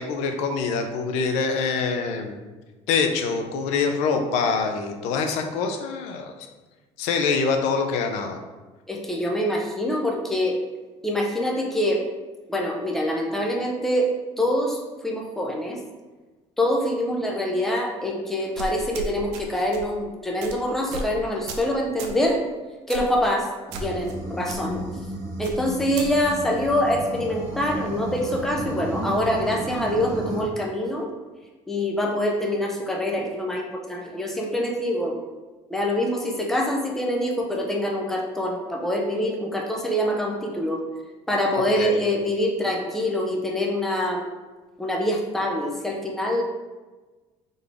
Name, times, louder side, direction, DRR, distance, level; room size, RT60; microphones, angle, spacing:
voice 1, 0.0-2.4 2.9-6.3 7.0-8.4 41.8-41.9, left 5 dB, 85° left, 4 dB, 0.6 m, -25 dB
voice 2, 8.9-10.6 11.0-12.0 12.5-14.1 14.4-14.8 15.0-15.8 16.6-22.4 22.9-23.5 23.8-24.8 25.4-31.1 31.7-35.2 35.7-40.8 41.3-44.2 44.8-46.4, left 1 dB, 5° left, -1 dB, 0.5 m, -25 dB
sound 1, 18.5-19.4 19.7-19.9 20.4-20.5 20.9-21.1 21.5-21.7 22.0-22.2 22.9-23.2 23.7-24.1 24.4-24.6 25.4-26.1, right 3 dB, 75° right, 0.6 m, -34 dB
sound 2, 23.7-30.4, right 1 dB, 30° right, 1.3 m, -33 dB
4.0 x 3.4 x 3.5 m, 1.2 s
cardioid pair, 165°, 11 cm